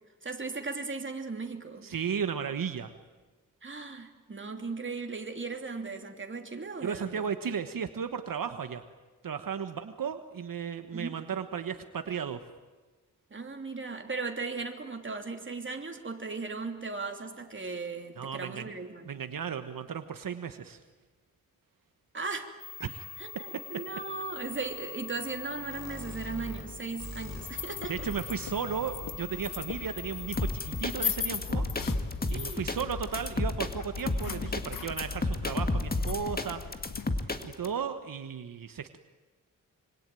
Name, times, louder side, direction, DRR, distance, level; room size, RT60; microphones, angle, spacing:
voice 1, 0.2-1.9 3.6-7.3 10.9-11.2 13.3-19.0 22.1-22.5 23.2-28.1 32.3-32.6, right 4 dB, 35° right, 4 dB, 3.0 m, -37 dB
voice 2, 1.8-2.9 6.8-8.8 9.2-12.4 18.2-18.7 19.1-20.8 22.8-23.1 27.9-31.6 32.3-36.8 37.4-39.0, right 7 dB, 80° right, 8 dB, 1.3 m, -35 dB
sound 1, 22.6-31.2, left 5 dB, 55° left, 7.8 m, -43 dB
sound 2, 27.0-37.1, left 6 dB, 75° left, 1.5 m, -39 dB
sound 3, 30.4-37.7, left 2 dB, 30° left, 2.1 m, -31 dB
26.0 x 25.0 x 9.2 m, 1.2 s
wide cardioid pair, 95°, 33 cm